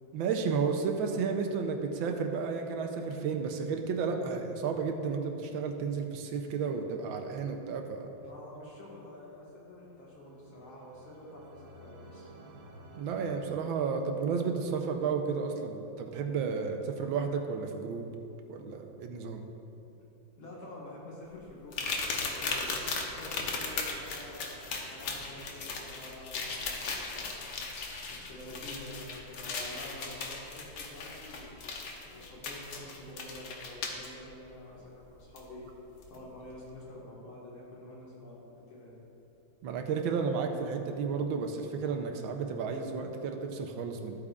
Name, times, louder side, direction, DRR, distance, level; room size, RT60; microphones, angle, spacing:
voice 1, 0.1-8.1 12.9-18.1 18.5-19.4 39.6-44.1, right 5 dB, 80° right, 4 dB, 1.4 m, -32 dB
voice 2, 8.1-12.3 20.4-27.4 28.1-31.6 32.1-35.7 36.1-39.0, left 1 dB, 85° left, -6 dB, 2.5 m, -48 dB
sound 1, 9.8-14.4, right 1 dB, 55° right, 1.1 m, -53 dB
sound 2, 21.7-34.1 35.4-35.5 36.0-36.2, left 4 dB, 65° left, 1.4 m, -37 dB
13.5 x 8.4 x 2.4 m, 2.9 s
omnidirectional pair, 2.2 m